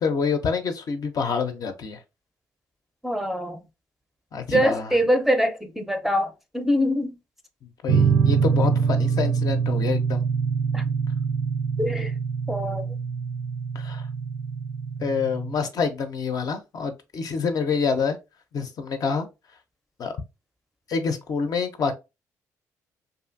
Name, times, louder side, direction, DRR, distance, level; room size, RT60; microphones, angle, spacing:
voice 1, 0.0-2.0 4.3-4.9 7.6-10.2 13.7-14.1 15.0-18.2 18.5-19.3 20.0-20.1 20.9-21.9, left 5 dB, 55° left, 0.5 m, -27 dB
voice 2, 3.0-3.6 4.5-7.2 10.7-10.8 11.8-12.1 12.5-12.9, equal, 5° right, 0.5 m, -24 dB
sound 1, 7.9-15.5, right 6 dB, 55° right, 0.5 m, -24 dB
2.6 x 2.4 x 2.4 m
supercardioid pair, 60°, 8 cm